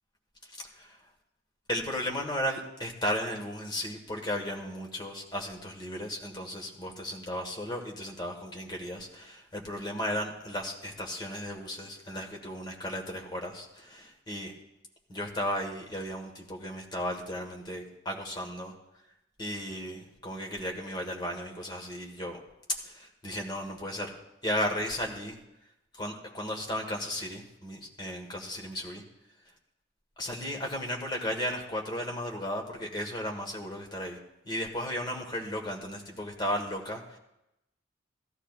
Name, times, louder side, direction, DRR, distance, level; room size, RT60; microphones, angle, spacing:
voice 1, 1.7-14.5 15.1-18.7 19.4-22.4 22.8-24.1 24.4-25.4 26.0-29.0 30.2-34.2 34.4-37.2, equal, 20° left, 1 dB, 1.5 m, -35 dB
17.5 x 13.0 x 2.4 m, 0.88 s
head